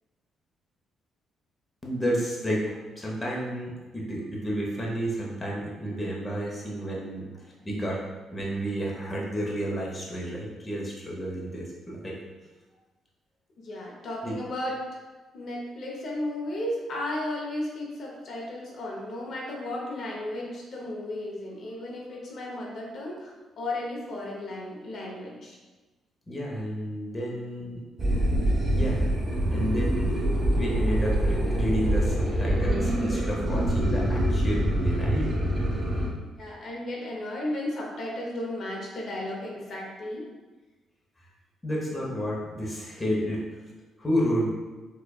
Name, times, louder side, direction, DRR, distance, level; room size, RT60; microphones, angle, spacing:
voice 1, 1.8-7.3 7.6-8.0 8.3-12.2 14.2-14.4 26.3-27.8 28.7-29.1 29.5-30.2 30.5-35.3 41.6-43.4 44.0-44.5, equal, 20° left, -4 dB, 0.8 m, -31 dB
voice 2, 13.6-14.8 15.3-25.6 36.4-40.3, left 1 dB, 60° left, -3 dB, 0.8 m, -34 dB
sound 1, 28.0-36.1, right 1 dB, 30° right, 1.0 m, -25 dB
4.6 x 2.4 x 2.3 m, 1.2 s
cardioid pair, 90°, 0 cm